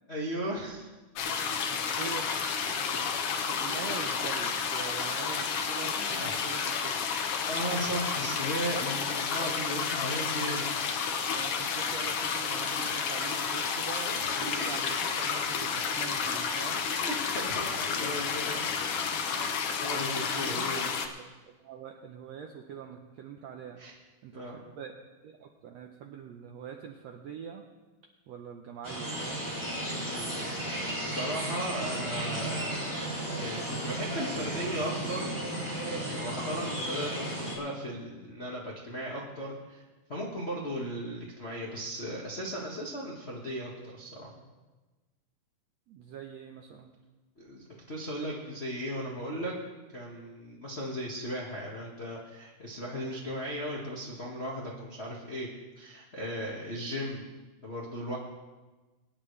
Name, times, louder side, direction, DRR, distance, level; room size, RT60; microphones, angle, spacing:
voice 1, 0.1-0.9 4.7-5.0 5.9-6.3 7.4-11.1 14.2-14.7 17.0-18.6 19.2-20.9 23.8-23.9 24.3-24.6 30.0-30.6 30.9-32.9 33.4-35.3 35.9-39.8 40.1-44.3 47.4-49.5 49.9-55.5 55.8-57.2 57.6-58.2, equal, 50° left, -4 dB, 0.7 m, -37 dB
sound 1, 1.1-21.1, left 6 dB, 80° left, 1.3 m, -31 dB
voice 2, 1.7-7.0 11.3-16.8 19.9-23.8 24.2-24.9 25.2-27.6 28.3-29.5 36.3-36.5 45.9-46.9, right 7 dB, 80° right, 3 dB, 1.5 m, -44 dB
sound 2, 28.8-37.6, right 1 dB, 5° right, 2.2 m, -34 dB
22.0 x 10.0 x 3.3 m, 1.2 s
omnidirectional pair, 3.9 m